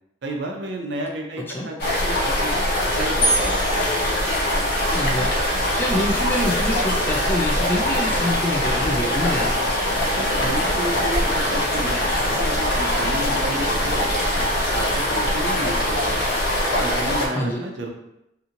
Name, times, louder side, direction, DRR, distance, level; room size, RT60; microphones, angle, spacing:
voice 1, 0.2-2.5 3.0-3.8 10.1-11.2 11.5-12.0 12.2-14.4 14.7-16.2 16.8-17.9, right 2 dB, 70° right, 1 dB, 0.5 m, -31 dB
voice 2, 1.4-1.7 4.8-5.3 5.8-9.5 17.3-17.6, left 1 dB, 10° left, -2 dB, 0.3 m, -26 dB
sound 1, 1.8-17.3, left 1 dB, 55° left, 0.6 m, -22 dB
sound 2, 3.2-5.0, right 1 dB, 75° left, 1.0 m, -27 dB
Hammer, 4.8-14.4 15.8-15.9, right 1 dB, 5° right, 0.7 m, -36 dB
2.8 x 2.6 x 2.5 m, 0.86 s
head